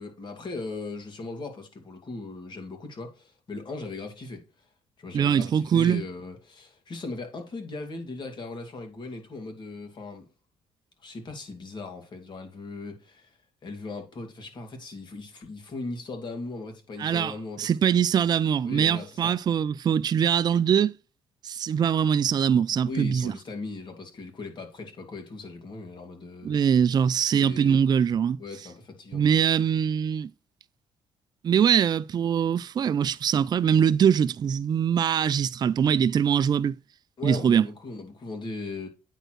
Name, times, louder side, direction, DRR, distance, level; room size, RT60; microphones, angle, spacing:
voice 1, 0.0-4.7 5.0-10.3 11.0-17.7 18.6-19.4 22.8-26.6 27.4-27.8 28.4-29.4 37.2-38.9, left 3 dB, 45° left, 2.6 m, -38 dB
voice 2, 5.1-6.0 17.0-20.9 21.4-23.3 26.4-28.4 29.1-30.3 31.4-36.8 37.2-37.7, right 8 dB, 40° right, 0.4 m, -23 dB
9.0 x 4.4 x 3.2 m
cardioid pair, 80°, 11 cm